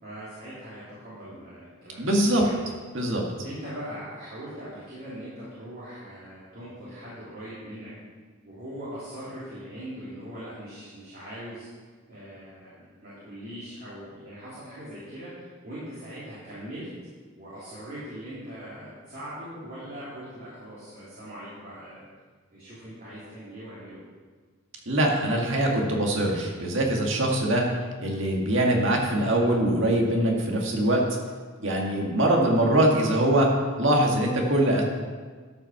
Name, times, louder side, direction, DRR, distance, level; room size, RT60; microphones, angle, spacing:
voice 1, 0.0-2.1 2.4-2.5 3.4-7.9 8.4-11.7 12.1-16.9 17.4-22.0 22.5-24.0, equal, 45° right, -11 dB, 3.3 m, -41 dB
voice 2, 2.0-2.4 2.9-3.2 24.9-27.6 28.0-31.0 31.6-33.5 33.8-34.8, right 1 dB, 65° right, 0 dB, 1.9 m, -23 dB
12.5 x 5.9 x 5.9 m, 1.5 s
head